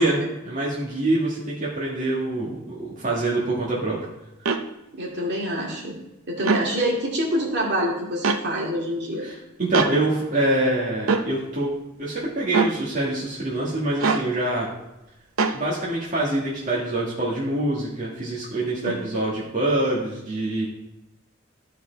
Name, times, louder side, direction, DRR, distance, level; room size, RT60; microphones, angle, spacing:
voice 1, 0.0-4.0 9.2-11.7 12.0-14.7 15.5-20.7, right 2 dB, 40° right, -6 dB, 1.8 m, -25 dB
sound 1, 4.5-4.6 6.4-6.7 8.2-8.4 9.7-9.9 11.1-11.3 12.5-12.8 14.0-14.3 15.4-15.6, right 4 dB, 85° right, 0.7 m, -22 dB
voice 2, 4.9-6.0 6.3-9.2 18.8-18.9, equal, 55° right, -3 dB, 2.3 m, -26 dB
12.5 x 4.7 x 4.6 m, 0.94 s
head